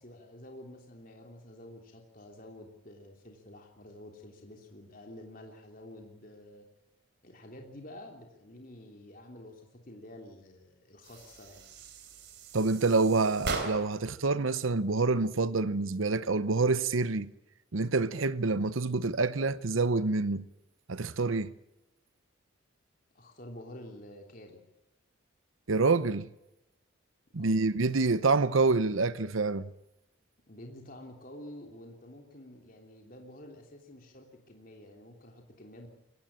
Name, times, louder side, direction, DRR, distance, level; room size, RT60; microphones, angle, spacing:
voice 1, 0.0-6.6 7.2-11.7 23.1-24.6 27.3-27.6 30.5-35.9, left 1 dB, 40° left, 3.3 m, -49 dB
sound 1, 11.0-14.1, right 3 dB, 55° right, 3.8 m, -39 dB
voice 2, 12.5-17.3 17.7-20.5 20.9-21.5 25.7-26.3 27.3-29.6, right 3 dB, 75° right, 0.8 m, -27 dB
23.0 x 17.5 x 8.9 m
head